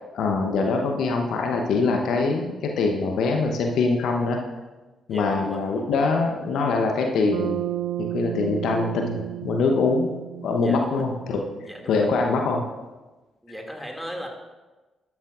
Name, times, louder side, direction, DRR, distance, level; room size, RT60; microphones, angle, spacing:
voice 1, 0.1-4.4 5.1-7.6 8.0-10.1 10.4-11.4 11.9-12.6, left 3 dB, 60° left, 2 dB, 0.9 m, -23 dB
voice 2, 5.1-5.6 10.6-11.0 11.7-12.1 13.4-14.3, equal, 5° right, 1 dB, 2.3 m, -36 dB
Bass guitar, 7.3-11.7, right 14 dB, 65° right, 0.3 m, -32 dB
13.0 x 10.5 x 2.5 m, 1.2 s
figure-of-eight pair, 40°, 0 cm